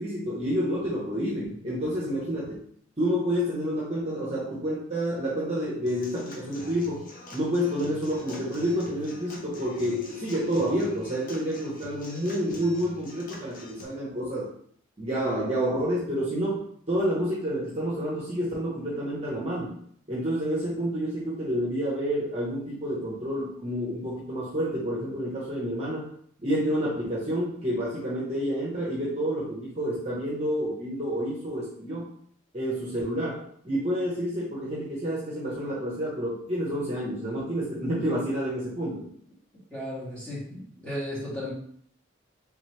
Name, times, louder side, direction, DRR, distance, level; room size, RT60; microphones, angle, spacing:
voice 1, 0.0-2.6 3.0-7.1 7.3-14.5 15.0-19.8 20.1-26.1 26.4-32.1 32.5-39.1, equal, 30° right, -5 dB, 0.8 m, -29 dB
Human voice / Acoustic guitar / Drum, 5.9-13.8, left 1 dB, 40° left, 0.6 m, -45 dB
voice 2, 39.7-41.5, left 1 dB, 5° left, -9 dB, 1.5 m, -35 dB
3.5 x 3.1 x 3.2 m, 0.62 s
head